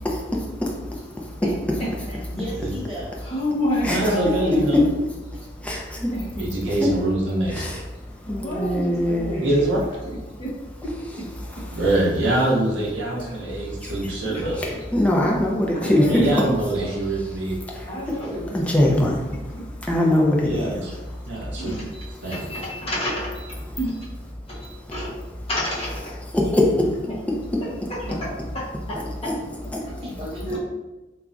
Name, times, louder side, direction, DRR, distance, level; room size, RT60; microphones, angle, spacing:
voice 1, 0.0-1.4 3.8-4.0 4.7-4.8 5.3-6.1 6.8-6.9 7.5-7.7 8.3-9.4 11.7-11.8 13.5-14.1 14.6-16.1 17.7-18.2 18.5-19.3 19.8-21.5 22.2-22.3 24.6-24.9 26.3-26.9 29.2-29.3 29.7-29.9, left 1 dB, 10° left, -3 dB, 0.4 m, -23 dB
voice 2, 1.4-2.2 3.2-4.8 6.1-6.7 8.3-9.6 10.1-10.6 10.8-11.0 13.2-13.4 14.3-14.5 15.7-16.3 17.9-18.6 19.5-19.7 21.6-22.0 22.3-23.5 23.8-24.1 24.5-25.2 25.5-26.2 27.1-27.2 27.9-30.0 30.5-30.6, equal, 35° left, -6 dB, 0.8 m, -29 dB
voice 3, 2.3-3.1 9.9-10.0 12.8-12.9 16.8-17.0 30.0-30.6, equal, 30° right, -8 dB, 1.0 m, -34 dB
voice 4, 3.9-4.8 6.4-7.6 9.4-9.8 11.7-14.6 16.0-17.5 20.4-20.9 21.3-21.7 22.2-22.5, right 1 dB, 85° right, -3 dB, 0.6 m, -24 dB
3.0 x 2.3 x 2.5 m, 1.1 s
head